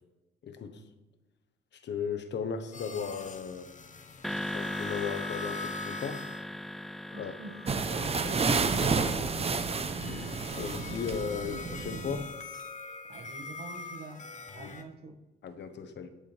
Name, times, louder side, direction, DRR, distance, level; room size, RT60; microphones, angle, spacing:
voice 1, 0.4-0.8 1.7-3.7 4.5-6.2 7.2-7.3 10.0-12.3 14.6-14.7 15.4-16.1, left 6 dB, 60° left, 1.2 m, -36 dB
sound 1, 2.7-6.4 6.8-14.8, left 4 dB, 40° left, 1.2 m, -44 dB
sound 2, 4.2-10.6, left 1 dB, ahead, 0.4 m, -39 dB
voice 2, 7.1-9.8 13.1-14.3 14.5-15.2, right 3 dB, 55° right, 1.9 m, -45 dB
sound 3, 7.7-12.3, right 4 dB, 30° right, 0.9 m, -30 dB
19.0 x 6.8 x 3.5 m
cardioid pair, 90°, 20 cm